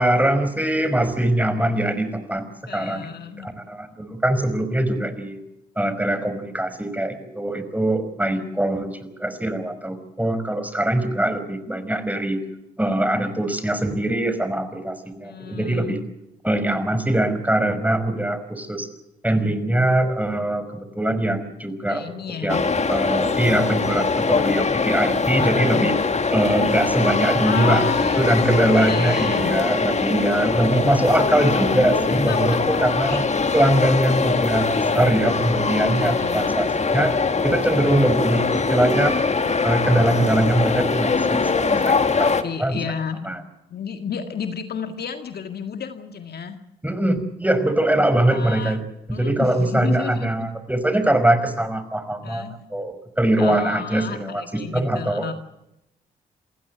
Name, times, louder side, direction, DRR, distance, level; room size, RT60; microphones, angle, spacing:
voice 1, 0.0-5.4 5.8-12.4 12.8-16.0 16.4-18.9 19.2-22.1 22.4-26.0 26.3-27.8 28.2-33.2 33.5-37.1 37.4-39.2 39.6-42.3 42.6-42.8 43.3-43.4 46.8-48.8 49.1-55.3, right 1 dB, 10° right, 10 dB, 5.3 m, -22 dB
voice 2, 2.7-3.5 8.2-8.5 15.2-16.0 21.8-22.6 25.4-25.9 27.4-29.5 32.1-33.2 35.9-36.6 42.1-43.3 43.7-46.6 48.3-48.8 49.1-50.5 52.2-52.5 53.4-55.3, left 6 dB, 60° left, 7 dB, 1.9 m, -32 dB
sound 1, 22.5-42.4, left 4 dB, 40° left, 2.0 m, -22 dB
28.0 x 16.0 x 8.0 m, 0.86 s
hypercardioid pair, 45°, 19 cm